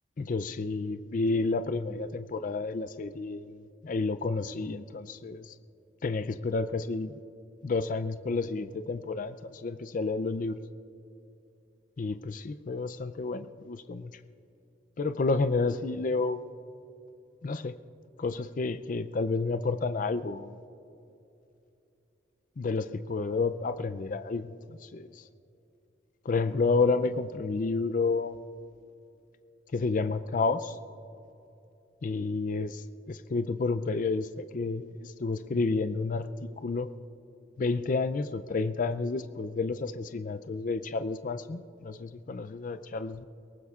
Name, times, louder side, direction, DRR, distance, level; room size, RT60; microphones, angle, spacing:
voice 1, 0.2-5.5 6.0-7.2 7.6-10.6 12.0-14.1 15.0-16.4 17.4-17.7 18.2-20.6 22.6-25.2 26.3-28.4 29.7-30.8 32.0-36.3 36.6-36.9 37.6-43.2, left 3 dB, 45° left, 11 dB, 0.4 m, -30 dB
29.0 x 18.5 x 2.4 m, 2.8 s
head